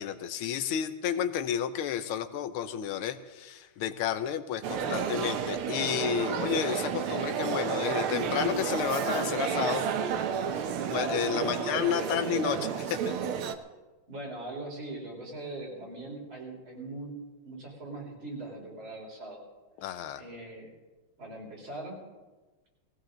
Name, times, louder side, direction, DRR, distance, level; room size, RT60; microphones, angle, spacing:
voice 1, 0.0-9.8 10.9-13.1 19.8-20.2, left 9 dB, 85° left, 10 dB, 1.7 m, -31 dB
sound 1, 4.6-13.5, right 7 dB, 85° right, 1.7 m, -31 dB
voice 2, 11.4-11.8 12.1-12.8 14.1-17.2 17.4-19.4 20.2-20.7 21.2-22.0, right 2 dB, 70° right, -3 dB, 5.0 m, -41 dB
19.0 x 15.5 x 3.9 m, 1.2 s
omnidirectional pair, 2.3 m